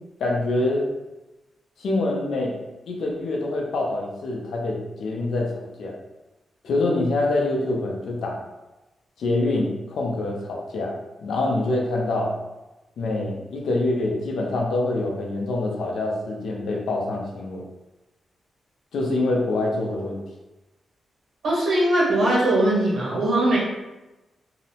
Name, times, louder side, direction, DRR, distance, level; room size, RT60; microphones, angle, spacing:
voice 1, 0.2-0.8 1.8-2.6 2.9-6.0 6.6-8.4 9.2-12.3 13.0-17.6 18.9-20.2, left 2 dB, 85° left, -1 dB, 0.5 m, -25 dB
voice 2, 21.4-23.6, right 1 dB, 90° right, -6 dB, 1.3 m, -20 dB
2.7 x 2.0 x 2.8 m, 1.0 s
wide cardioid pair, 120°, 0 cm